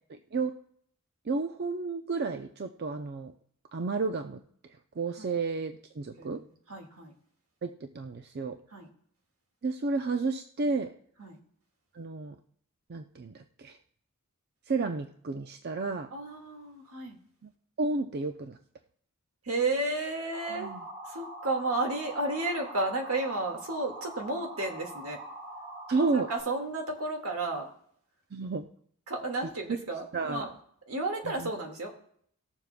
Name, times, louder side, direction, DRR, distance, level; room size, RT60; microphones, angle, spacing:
voice 1, 0.1-0.6 1.3-3.3 3.7-4.4 5.0-6.4 7.6-8.6 9.6-10.9 11.9-12.4 12.9-13.8 14.7-16.1 17.4-17.5 17.8-18.6 20.5-20.8 25.9-26.3 28.3-28.6 30.1-30.5 31.2-31.5, right 3 dB, 45° right, 7 dB, 0.5 m, -32 dB
voice 2, 6.7-7.1 8.7-8.9 11.2-11.4 16.1-17.2 19.4-20.7 21.1-25.2 26.0-27.7 29.1-30.5 30.9-31.9, right 2 dB, 75° right, 2 dB, 1.8 m, -32 dB
sound 1, 20.3-26.4, right 2 dB, 20° right, 4.3 m, -43 dB
19.5 x 7.2 x 2.2 m, 0.65 s
head